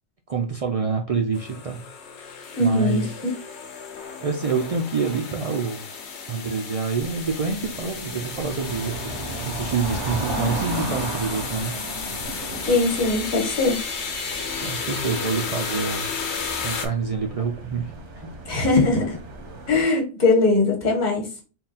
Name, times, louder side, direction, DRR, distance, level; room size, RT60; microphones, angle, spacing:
voice 1, 0.3-1.8 2.6-3.2 4.2-5.9 6.3-11.7 14.6-16.1 16.6-18.3, right 5 dB, 70° right, 3 dB, 0.3 m, -27 dB
sound 1, 1.3-16.9, left 5 dB, 75° left, 1.0 m, -33 dB
voice 2, 2.5-3.0 12.7-13.8 18.5-19.2 19.7-21.3, left 3 dB, 45° left, 1 dB, 1.2 m, -20 dB
sound 2, 7.0-19.8, right 2 dB, 85° right, 1.3 m, -35 dB
3.7 x 2.2 x 4.0 m, 0.34 s
omnidirectional pair, 1.2 m